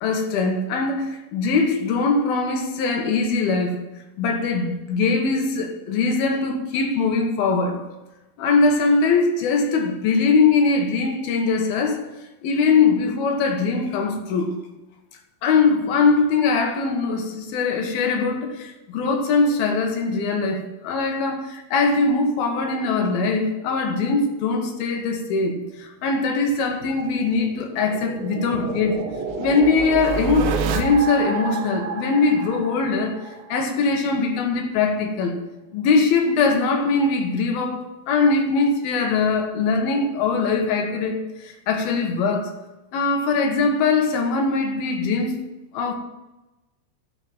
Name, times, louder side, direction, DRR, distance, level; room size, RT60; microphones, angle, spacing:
voice 1, 0.0-3.8 4.2-7.8 8.4-12.1 12.4-14.6 15.4-29.0 29.4-33.2 33.5-35.4 35.7-42.5 42.9-45.3 45.7-45.9, left 4 dB, 90° left, 3.3 m, -21 dB
sound 1, 26.8-33.6, right 6 dB, 80° right, 2.7 m, -29 dB
11.0 x 5.5 x 8.8 m
omnidirectional pair, 4.2 m